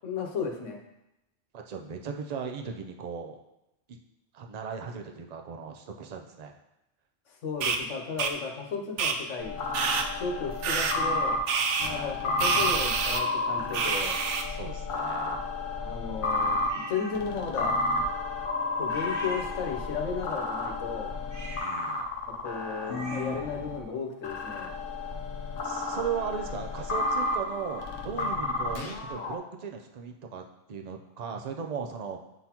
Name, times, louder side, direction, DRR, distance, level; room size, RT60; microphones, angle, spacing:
voice 1, 0.0-0.8 7.3-9.5 10.2-11.4 11.8-14.2 15.8-17.8 18.8-21.1 22.4-24.7, left 5 dB, 70° left, 2 dB, 1.2 m, -34 dB
voice 2, 1.5-3.4 3.9-4.0 4.3-6.5 11.8-12.1 14.5-15.5 21.6-22.0 25.6-32.2, right 6 dB, 50° right, 4 dB, 0.5 m, -37 dB
sound 1, 7.6-7.8 8.2-8.3 9.0-9.1 9.7-10.0 10.6-10.9 11.5-11.9 12.4-13.2 13.7-14.4, right 5 dB, 70° right, 0.9 m, -27 dB
sound 2, 9.4-23.8 24.2-29.4, left 2 dB, 50° left, 0.8 m, -32 dB
sound 3, 16.7-17.2 18.9-20.0 21.2-23.5, right 2 dB, 90° right, 2.4 m, -45 dB
9.1 x 3.9 x 2.9 m, 0.91 s
omnidirectional pair, 1.3 m